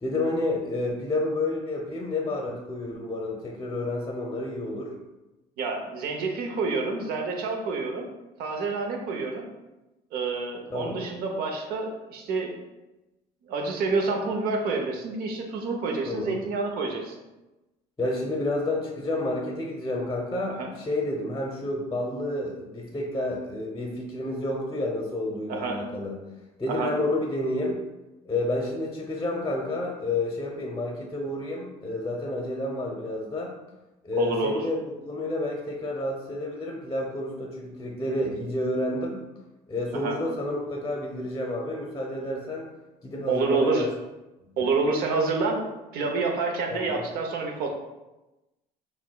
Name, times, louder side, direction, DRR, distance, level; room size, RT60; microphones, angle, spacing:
voice 1, 0.0-4.9 10.7-11.1 16.1-16.4 18.0-26.1 26.6-27.8 28.2-33.5 34.0-39.2 39.7-42.7 43.0-43.9 44.4-44.6 46.7-47.0, left 2 dB, 20° left, 0 dB, 0.7 m, -30 dB
voice 2, 5.6-8.0 8.4-9.4 10.1-12.5 13.4-17.1 20.6-20.7 25.5-25.8 26.7-26.9 34.2-34.6 40.0-40.2 43.3-43.9 44.6-47.7, right 4 dB, 70° right, 2 dB, 0.8 m, -28 dB
5.9 x 2.2 x 2.3 m, 1.0 s
supercardioid pair, 85°, 16 cm